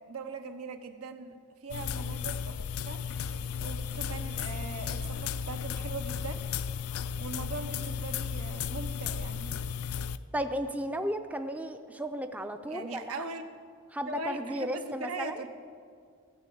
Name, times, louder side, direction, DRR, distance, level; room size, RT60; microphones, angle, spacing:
voice 1, 0.1-1.4 1.6-6.4 7.2-9.5 12.7-13.4 14.1-15.5, right 3 dB, 85° right, 7 dB, 1.0 m, -40 dB
sound 1, 1.7-10.2, left 7 dB, 80° left, 0.4 m, -34 dB
voice 2, 10.3-13.3 13.9-15.4, equal, 5° right, 8 dB, 0.4 m, -34 dB
15.5 x 6.3 x 8.5 m, 2.1 s
head